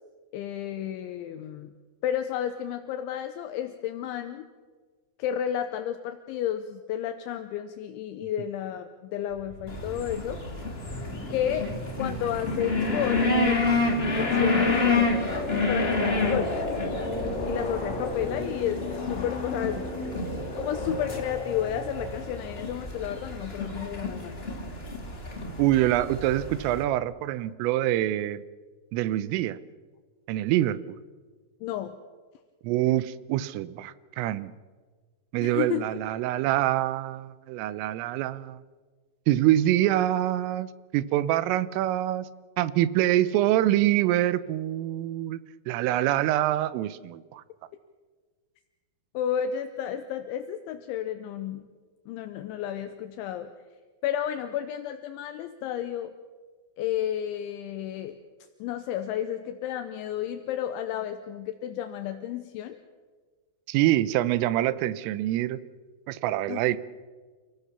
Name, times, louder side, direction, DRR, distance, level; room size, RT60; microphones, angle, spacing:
voice 1, 0.3-1.7 2.0-4.5 5.2-10.4 11.3-11.7 12.0-14.8 15.7-16.5 17.5-19.9 20.6-24.5 31.6-32.0 35.4-35.9 49.1-51.6 52.1-53.5 54.0-56.1 56.8-58.2 58.6-62.8 66.5-66.6, left 10 dB, 80° left, 8 dB, 3.1 m, -32 dB
sound 1, 9.3-22.7, left 2 dB, 40° left, 3.7 m, -34 dB
sound 2, 9.7-26.8, left 3 dB, 25° left, 1.3 m, -29 dB
voice 2, 25.6-28.4 28.9-29.6 30.3-30.8 32.6-34.5 35.3-38.6 39.3-42.3 42.6-47.4 63.7-65.6 66.1-66.8, right 14 dB, 85° right, 16 dB, 3.4 m, -25 dB
29.0 x 17.0 x 6.8 m, 1.4 s
omnidirectional pair, 5.7 m